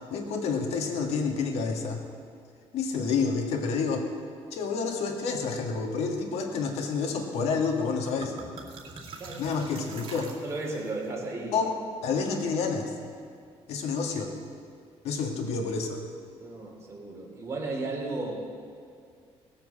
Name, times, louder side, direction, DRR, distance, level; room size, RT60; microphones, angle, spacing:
voice 1, 0.1-2.0 2.7-4.1 4.5-8.3 9.4-10.3 11.5-12.9 13.7-14.3 15.0-16.0, left 5 dB, 80° left, 3 dB, 1.7 m, -29 dB
sound 1, 7.5-7.6 7.9-10.9, right 3 dB, 60° right, 2.4 m, -44 dB
voice 2, 10.4-11.7 16.4-18.3, right 2 dB, 25° right, -1 dB, 3.1 m, -34 dB
18.0 x 7.3 x 7.3 m, 2.3 s
cardioid pair, 140°, 11 cm